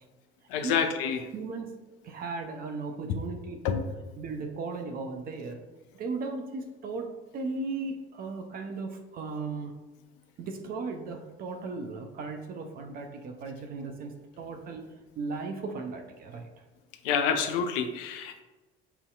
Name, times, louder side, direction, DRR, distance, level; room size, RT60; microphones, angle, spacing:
voice 1, 0.5-1.2 3.6-3.7 17.0-18.4, left 7 dB, 55° left, 7 dB, 0.4 m, -27 dB
voice 2, 1.3-1.7 2.0-3.9 4.2-5.6 5.9-9.8 10.4-16.5, right 3 dB, 30° right, 4 dB, 0.4 m, -36 dB
5.4 x 2.7 x 2.3 m, 1.2 s
figure-of-eight pair, 65°, 34 cm